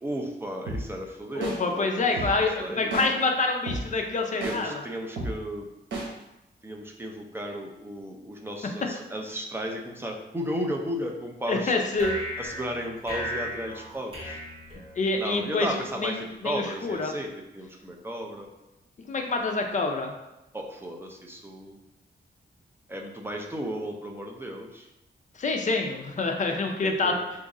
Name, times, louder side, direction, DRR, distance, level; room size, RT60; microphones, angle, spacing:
voice 1, 0.0-2.1 2.6-2.9 4.4-5.7 6.6-11.7 12.4-14.4 15.2-18.5 20.5-21.8 22.9-24.9 26.8-27.2, equal, 10° right, 1 dB, 0.4 m, -34 dB
sound 1, 0.7-0.8 1.4-1.6 2.2-2.3 2.9-3.1 3.7-3.8 4.4-4.6 5.2-5.3 5.9-6.1, right 2 dB, 90° right, 0.9 m, -31 dB
voice 2, 1.3-4.8 8.6-8.7 11.5-12.2 15.0-17.1 19.1-20.1 25.4-27.1, left 3 dB, 45° left, 3 dB, 0.5 m, -27 dB
sound 2, 11.9-15.4, equal, 30° right, 1.2 m, -36 dB
3.0 x 2.5 x 3.7 m, 0.94 s
wide cardioid pair, 110°, 18 cm